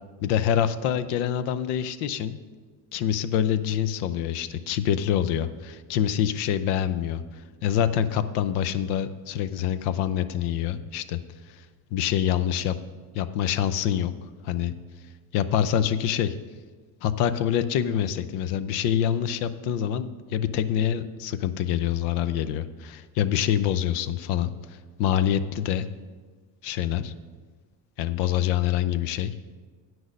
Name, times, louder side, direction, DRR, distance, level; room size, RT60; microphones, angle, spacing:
voice 1, 0.2-2.4 2.9-11.2 11.5-11.7 11.9-12.8 13.1-14.1 14.4-14.8 15.3-16.3 17.0-25.9 26.6-27.1 28.0-29.3, left 10 dB, 80° left, 13 dB, 0.7 m, -26 dB
9.3 x 6.2 x 6.4 m, 1.5 s
cardioid pair, 145°, 40 cm